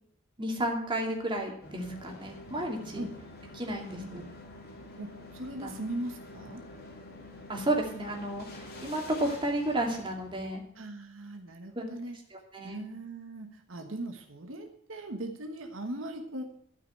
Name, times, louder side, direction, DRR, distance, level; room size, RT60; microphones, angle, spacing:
voice 1, 0.4-3.1 3.6-4.2 5.6-5.7 7.5-8.5 8.8-10.6 11.7-11.9 12.5-12.8, right 1 dB, 25° right, 1 dB, 2.6 m, -32 dB
sound 1, 1.6-10.5, left 1 dB, 50° left, 2.9 m, -47 dB
voice 2, 3.9-4.3 5.0-6.6 10.7-12.2 12.6-16.4, right 1 dB, 75° right, 5 dB, 1.3 m, -39 dB
12.5 x 5.9 x 8.7 m, 0.67 s
head